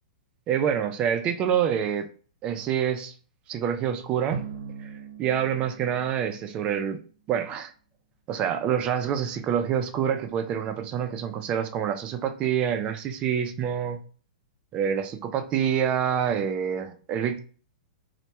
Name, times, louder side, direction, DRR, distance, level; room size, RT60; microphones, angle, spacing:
voice 1, 0.5-2.1 2.4-3.1 3.5-4.4 4.8-4.9 5.2-7.0 7.3-7.7 8.3-14.0 14.7-17.4, right 8 dB, 25° right, 0.3 m, -27 dB
Drum, 4.3-7.0, right 6 dB, 65° right, 0.7 m, -40 dB
2.2 x 2.1 x 2.8 m
hypercardioid pair, 145°, 4 cm